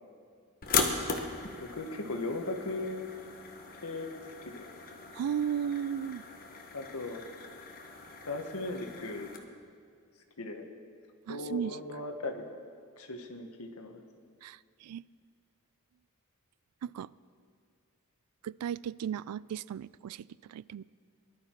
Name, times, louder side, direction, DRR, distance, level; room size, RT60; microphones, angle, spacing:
sound 1, 0.6-9.4, left 5 dB, 40° left, 1.1 m, -38 dB
voice 1, 1.6-3.1 3.8-4.1 4.4-4.7 6.7-7.2 8.3-9.3 10.4-10.6 11.3-12.4 13.0-14.0, left 2 dB, 75° left, 5 dB, 1.3 m, -37 dB
voice 2, 5.1-6.2 11.3-11.8 14.4-15.1 16.8-17.1 18.4-20.8, right 8 dB, 85° right, 21 dB, 0.3 m, -35 dB
19.5 x 11.5 x 4.5 m, 2.2 s
head